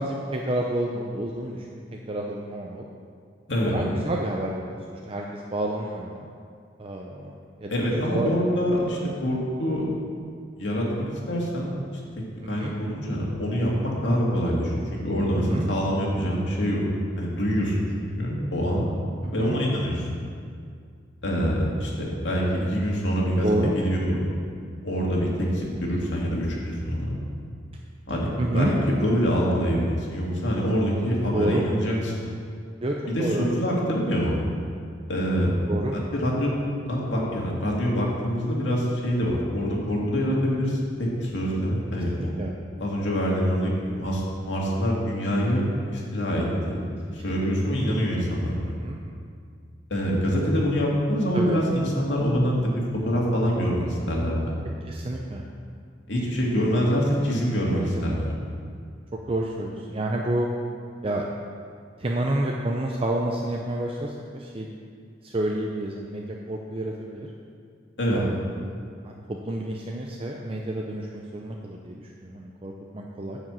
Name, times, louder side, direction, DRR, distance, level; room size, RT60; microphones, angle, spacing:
voice 1, 0.0-1.8 2.1-2.8 3.7-6.3 6.8-7.3 7.6-8.3 8.6-8.8 12.4-12.7 15.4-15.7 19.2-19.6 23.4-23.7 28.4-28.7 31.3-31.6 32.8-33.5 35.7-36.0 42.2-42.5 48.8-49.0 51.3-51.6 54.9-55.4 57.7-58.2 59.3-60.5 61.0-61.3 62.0-64.7 65.2-67.3 68.1-68.7 69.0-73.4, right 1 dB, 30° right, -1 dB, 0.6 m, -29 dB
voice 2, 7.7-9.8 10.6-10.9 11.3-11.7 12.2-14.7 15.0-16.8 17.2-17.8 18.2-18.9 19.3-20.0 21.2-24.2 24.8-27.2 28.1-28.3 28.5-32.3 33.1-34.4 35.1-35.5 36.1-36.6 36.9-42.1 42.8-46.8 47.1-48.8 49.9-54.5 56.1-58.3 68.0-68.2, equal, 85° left, -3 dB, 2.2 m, -25 dB
9.7 x 5.1 x 7.5 m, 2.2 s
head